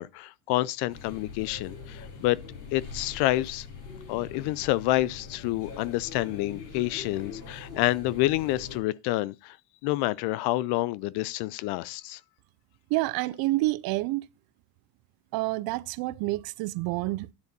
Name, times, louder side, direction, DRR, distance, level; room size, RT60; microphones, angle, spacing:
voice 1, 0.0-2.4 2.7-3.7 4.1-9.6 9.8-12.2, left 17 dB, 55° left, 0.5 m, -28 dB
sound 1, 0.9-8.8, left 5 dB, 80° left, 6.7 m, -43 dB
voice 2, 12.9-14.2 15.3-17.3, right 19 dB, 50° right, 0.5 m, -28 dB
9.8 x 4.0 x 6.7 m
supercardioid pair, 125°, 48 cm